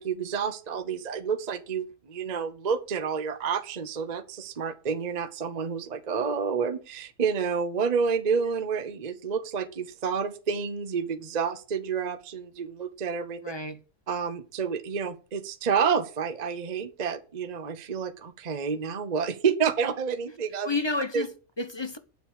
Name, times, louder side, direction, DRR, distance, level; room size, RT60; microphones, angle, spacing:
voice 1, 0.0-13.4 14.1-20.7 21.1-21.2, right 6 dB, 35° right, 0.8 m, -29 dB
voice 2, 13.4-13.8 20.6-22.0, left 3 dB, 25° left, 0.7 m, -31 dB
8.9 x 7.2 x 8.7 m
omnidirectional pair, 1.7 m